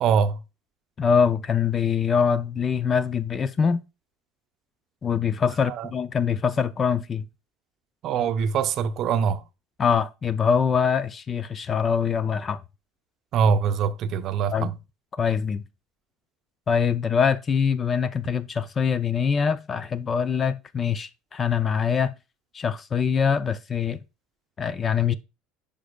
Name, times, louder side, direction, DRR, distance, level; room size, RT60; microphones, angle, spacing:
voice 1, 0.0-0.4 5.7-5.9 8.0-9.4 13.3-14.7, right 6 dB, 45° right, 0.6 m, -23 dB
voice 2, 1.0-3.8 5.0-7.2 9.8-12.6 14.5-14.7 15.2-15.6 16.7-22.1 22.5-24.0 24.6-25.1, left 6 dB, 25° left, 0.4 m, -23 dB
9.9 x 5.2 x 2.2 m
cardioid pair, 145°, 0 cm